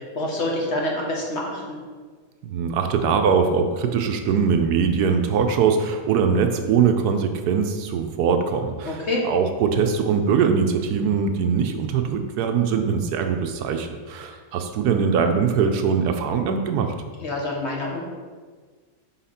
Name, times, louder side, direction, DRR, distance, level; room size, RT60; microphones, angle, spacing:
voice 1, 0.0-1.8 8.8-9.2 17.2-18.0, left 1 dB, 45° left, -2 dB, 1.3 m, -27 dB
voice 2, 2.4-16.9, right 6 dB, 80° right, 6 dB, 1.2 m, -22 dB
5.7 x 5.7 x 4.2 m, 1.5 s
omnidirectional pair, 1.7 m